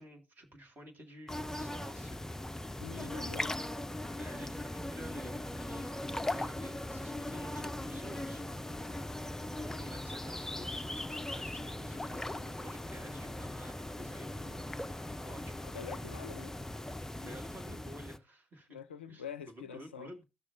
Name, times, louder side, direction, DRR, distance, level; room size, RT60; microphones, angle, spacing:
voice 1, 0.0-3.5 4.2-8.5 9.5-14.7 15.2-15.6 16.9-18.7 19.1-20.2, right 1 dB, 35° right, 2.0 m, -52 dB
sound 1, 1.3-18.2, left 1 dB, 10° left, 0.5 m, -39 dB
voice 2, 2.8-3.6 15.6-16.6 18.7-20.1, left 8 dB, 80° left, 0.4 m, -46 dB
15.0 x 6.2 x 2.6 m
figure-of-eight pair, 50°, 6 cm